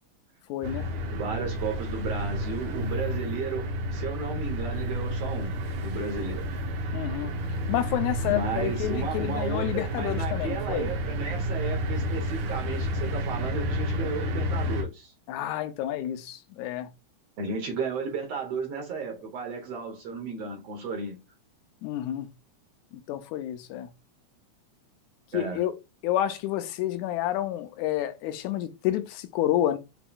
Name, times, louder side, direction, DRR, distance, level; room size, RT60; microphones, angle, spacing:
voice 1, 0.5-0.9 6.9-7.3 7.7-10.9 15.3-16.9 21.8-22.3 22.9-23.9 25.3-25.7 26.0-29.8, left 12 dB, 85° left, 2.0 m, -29 dB
sound 1, 0.6-14.8, equal, 90° right, 2.5 m, -31 dB
voice 2, 1.1-6.6 8.2-15.1 17.4-21.2 25.3-25.6, right 4 dB, 65° right, 1.8 m, -34 dB
7.0 x 2.9 x 2.3 m
omnidirectional pair, 3.4 m